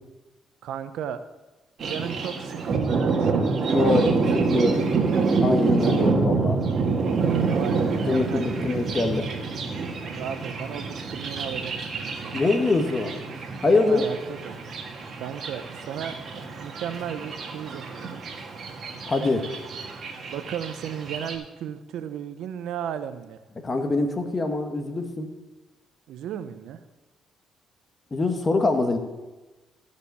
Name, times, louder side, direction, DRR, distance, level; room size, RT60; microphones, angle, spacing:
voice 1, 0.6-1.2 1.8-5.3 7.4-8.6 10.0-12.4 13.6-14.2 14.4-14.6 15.2-16.1 16.6-18.2 20.3-23.4 26.1-26.8, right 9 dB, 85° right, 11 dB, 0.6 m, -35 dB
Thunder, 1.8-21.4, right 4 dB, 55° right, 1.7 m, -27 dB
voice 2, 3.7-4.7 5.4-6.6 8.1-9.3 12.3-13.2 13.6-14.0 19.1-19.5 23.6-25.3 28.1-29.0, left 3 dB, 30° left, 6 dB, 1.5 m, -24 dB
13.5 x 5.1 x 6.8 m, 1.1 s
cardioid pair, 90°, 0 cm